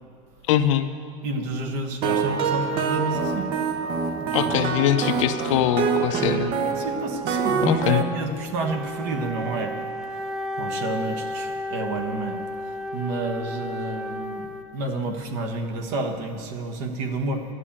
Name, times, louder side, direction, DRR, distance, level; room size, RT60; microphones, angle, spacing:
voice 1, 0.5-0.9 4.3-6.5 7.6-8.0, left 10 dB, 85° left, 9 dB, 0.7 m, -22 dB
voice 2, 1.2-3.5 3.8-4.5 6.7-9.8 10.1-10.3 10.6-12.4 12.6-17.4, right 2 dB, 50° right, 5 dB, 1.3 m, -30 dB
sound 1, 2.0-8.0, right 6 dB, 35° right, 0.8 m, -25 dB
Wind instrument woodwind instrument, 8.6-15.0, left 1 dB, 5° right, 0.3 m, -33 dB
11.0 x 7.4 x 8.7 m, 2.5 s
supercardioid pair, 170°, 16 cm